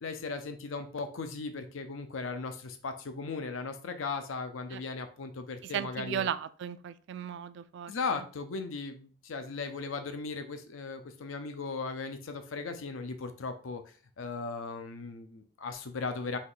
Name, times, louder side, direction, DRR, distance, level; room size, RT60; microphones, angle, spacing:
voice 1, 0.0-6.3 7.9-16.4, left 4 dB, 90° left, 8 dB, 0.5 m, -37 dB
voice 2, 5.6-8.2, right 9 dB, 65° right, 13 dB, 0.3 m, -36 dB
4.1 x 2.9 x 3.8 m, 0.39 s
head